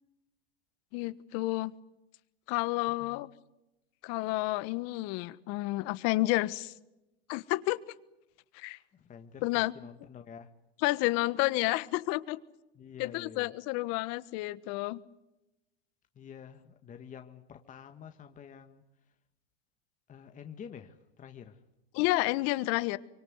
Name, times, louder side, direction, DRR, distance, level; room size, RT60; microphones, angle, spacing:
voice 1, 0.9-1.7 2.5-3.3 4.0-6.7 7.3-7.8 8.5-8.8 9.4-9.7 10.8-12.4 13.0-15.0 21.9-23.0, left 20 dB, 50° left, 16 dB, 1.4 m, -30 dB
voice 2, 8.9-10.5 12.7-13.5 16.1-18.8 20.1-21.6, left 7 dB, 25° left, 6 dB, 1.7 m, -48 dB
25.0 x 24.0 x 8.1 m, 0.95 s
hypercardioid pair, 115°, 31 cm